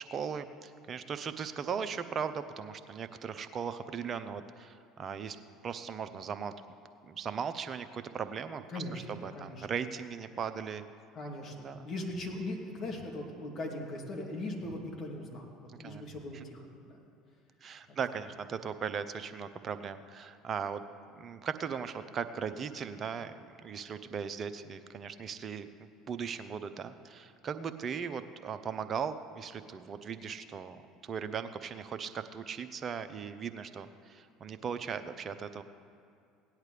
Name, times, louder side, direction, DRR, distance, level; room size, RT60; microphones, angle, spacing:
voice 1, 0.0-5.4 5.6-6.5 7.0-10.8 11.5-11.9 15.7-16.0 16.3-16.4 17.6-20.8 21.2-23.3 23.6-35.6, right 6 dB, 40° right, 10 dB, 0.7 m, -38 dB
voice 2, 8.7-9.0 9.3-9.7 11.1-15.5 15.8-16.7 17.9-18.0, left 1 dB, 50° left, 0 dB, 2.6 m, -39 dB
17.5 x 10.5 x 3.4 m, 2.4 s
hypercardioid pair, 70°, 0 cm